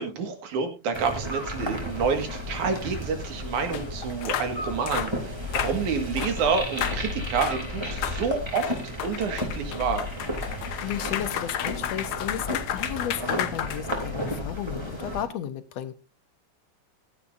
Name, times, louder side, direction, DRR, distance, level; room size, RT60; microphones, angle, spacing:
voice 1, 0.0-8.7 9.0-10.0, right 5 dB, 90° right, 3.3 m, -28 dB
sound 1, 0.9-15.2, left 1 dB, 10° right, 2.7 m, -33 dB
sound 2, 3.7-3.8 4.2-4.5 4.9-5.1 5.5-5.8 6.2-6.4 6.8-7.0 7.4-7.6 8.0-8.2 8.6-14.3, left 11 dB, 90° left, 2.4 m, -32 dB
voice 2, 10.8-15.9, left 10 dB, 70° left, 2.0 m, -34 dB
16.0 x 11.5 x 2.6 m
omnidirectional pair, 3.4 m